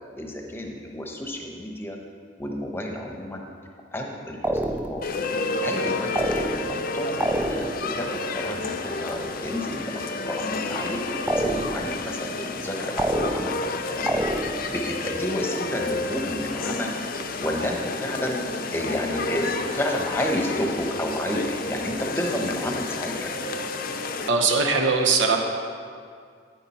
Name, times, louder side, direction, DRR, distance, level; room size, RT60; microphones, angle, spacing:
voice 1, 0.2-2.0 2.4-3.4 3.9-5.0 5.6-7.7 8.0-14.2 14.7-16.9 17.4-18.4 18.7-23.3, left 1 dB, 10° left, 1 dB, 1.0 m, -31 dB
sound 1, 4.4-5.2 6.2-6.9 7.2-7.9 11.3-12.0 13.0-13.7 14.1-14.8, right 1 dB, 10° right, 0.3 m, -27 dB
sound 2, 5.0-24.3, left 3 dB, 50° left, 0.6 m, -30 dB
voice 2, 24.3-25.4, right 4 dB, 75° right, 2 dB, 1.0 m, -20 dB
9.8 x 9.8 x 4.3 m, 2.2 s
head